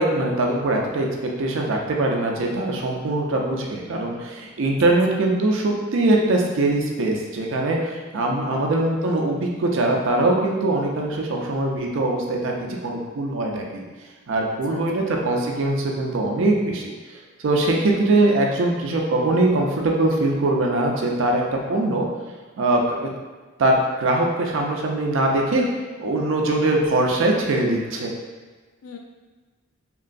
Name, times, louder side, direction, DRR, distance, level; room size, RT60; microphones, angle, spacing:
voice 1, 0.0-12.5 12.8-13.8 14.3-16.9 17.4-22.1 22.6-23.1 23.6-25.7 26.0-28.1, right 2 dB, 65° right, 0 dB, 0.5 m, -22 dB
voice 2, 4.9-5.2 8.3-8.7 14.5-15.1 17.7-18.0 28.8-29.0, left 5 dB, 80° left, 1 dB, 0.3 m, -41 dB
3.0 x 2.6 x 2.5 m, 1.4 s
head